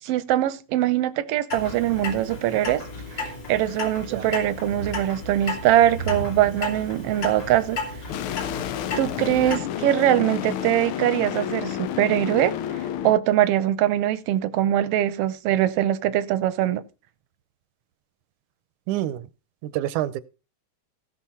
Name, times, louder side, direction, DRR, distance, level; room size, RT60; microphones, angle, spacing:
voice 1, 0.0-2.8 3.5-7.8 9.0-12.6 13.0-16.8, right 12 dB, 70° right, 1.6 m, -22 dB
Clock, 1.5-9.6, left 2 dB, 45° left, 3.8 m, -33 dB
sound 1, 8.1-13.1, left 10 dB, 80° left, 1.2 m, -30 dB
voice 2, 18.9-19.3 19.6-20.2, right 14 dB, 90° right, 2.2 m, -27 dB
17.0 x 6.2 x 4.2 m
omnidirectional pair, 3.4 m